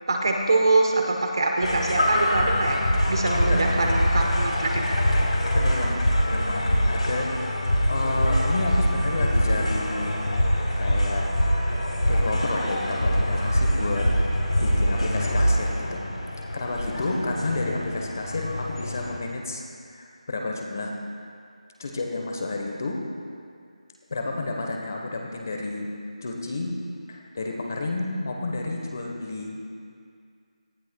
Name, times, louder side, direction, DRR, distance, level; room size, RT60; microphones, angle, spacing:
voice 1, 0.1-5.0, right 2 dB, 40° right, 2 dB, 1.0 m, -24 dB
sound 1, 1.6-19.2, equal, 75° left, 3.1 m, -24 dB
voice 2, 5.5-6.0 6.2-7.3 7.9-10.1 10.8-11.3 12.1-14.1 14.6-16.0 16.4-19.6 19.9-21.0 21.8-23.0 24.1-25.9 26.2-26.8 27.1-29.6, left 2 dB, 30° left, 1 dB, 1.0 m, -30 dB
18.0 x 13.0 x 2.3 m, 2.2 s
figure-of-eight pair, 175°, 4 cm